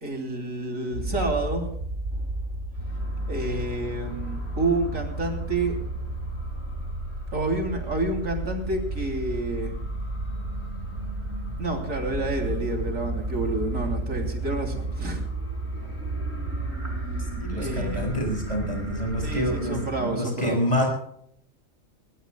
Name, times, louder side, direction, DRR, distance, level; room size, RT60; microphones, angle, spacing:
voice 1, 0.0-1.8 3.3-5.8 7.3-9.7 11.6-15.2 17.5-18.1 19.2-20.6, right 2 dB, 90° right, 3 dB, 3.7 m, -29 dB
sound 1, 0.9-19.6, right 2 dB, 70° right, 4.3 m, -32 dB
sound 2, 2.7-20.1, equal, 55° left, 4.5 m, -40 dB
voice 2, 17.4-19.8 20.1-20.9, equal, 30° left, 0 dB, 5.8 m, -27 dB
21.5 x 19.5 x 2.3 m, 0.70 s
omnidirectional pair, 1.3 m